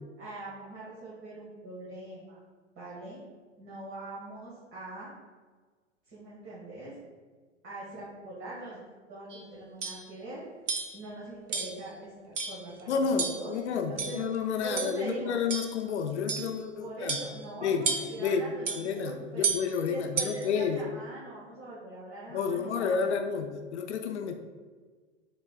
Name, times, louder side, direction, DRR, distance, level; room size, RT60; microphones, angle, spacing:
voice 1, 0.2-2.4 2.7-3.2 3.6-5.1 6.1-6.9 7.6-8.8 9.1-10.4 10.9-14.2 14.6-15.4 16.8-19.5 19.9-23.2, right 2 dB, 30° right, -8 dB, 1.4 m, -42 dB
sound 1, 9.3-9.4 9.8-10.1 10.7-11.0 11.5-11.8 12.4-12.7 13.2-13.5 14.0-14.4 14.8-15.0 15.5-15.8 16.3-16.6 17.1-17.4 17.8-18.3 18.7-18.9 19.4-19.7 20.2-20.5, right 5 dB, 80° right, 0.6 m, -32 dB
voice 2, 12.9-17.2 17.6-17.9 18.2-20.8 22.3-24.3, left 6 dB, 70° left, 6 dB, 0.5 m, -30 dB
7.4 x 2.9 x 2.3 m, 1.5 s
figure-of-eight pair, 95°, 36 cm